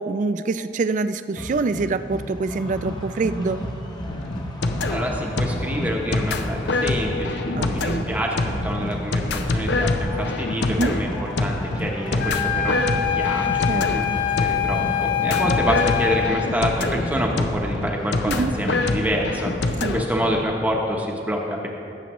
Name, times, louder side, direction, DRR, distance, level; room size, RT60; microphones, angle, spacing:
voice 1, 0.0-3.6 7.5-8.0 10.7-10.9 13.7-14.2 18.2-18.5 19.8-20.0, right 3 dB, 45° right, 12 dB, 0.3 m, -25 dB
sound 1, 1.4-20.4, equal, 25° left, 1.0 m, -34 dB
sound 2, 4.1-20.0, left 2 dB, 75° left, 0.6 m, -26 dB
voice 2, 4.9-11.1 11.4-14.1 14.4-21.7, equal, 10° right, -1 dB, 0.9 m, -27 dB
sound 3, 12.2-16.4, left 10 dB, 50° left, 1.0 m, -24 dB
17.5 x 7.3 x 3.0 m, 2.6 s
head